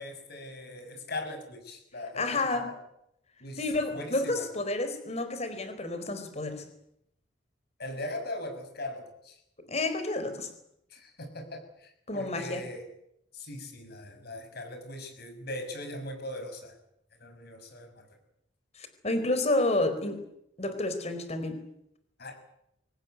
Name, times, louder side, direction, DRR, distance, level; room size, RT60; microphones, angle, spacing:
voice 1, 0.0-2.7 3.4-3.6 3.9-4.5 7.8-9.4 10.9-12.8 13.3-16.8 17.2-18.2 22.2-22.5, left 1 dB, 55° left, 6 dB, 6.5 m, -40 dB
voice 2, 2.2-2.7 3.6-6.6 9.7-10.5 12.1-12.6 18.8-20.2 20.6-21.6, left 2 dB, 35° left, 10 dB, 4.4 m, -30 dB
24.0 x 18.5 x 9.5 m, 0.78 s
head